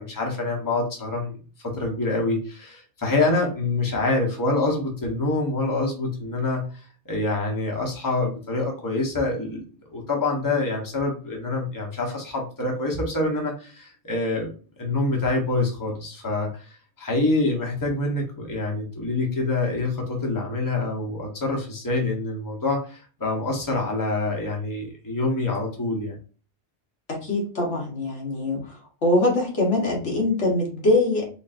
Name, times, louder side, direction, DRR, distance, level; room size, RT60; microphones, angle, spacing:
voice 1, 0.0-1.4 1.6-9.6 9.9-14.5 14.8-26.1, left 2 dB, 20° left, -1 dB, 1.1 m, -26 dB
voice 2, 27.1-28.7 29.0-31.2, left 2 dB, 80° left, -2 dB, 1.6 m, -23 dB
3.9 x 3.5 x 2.5 m, 0.37 s
omnidirectional pair, 1.2 m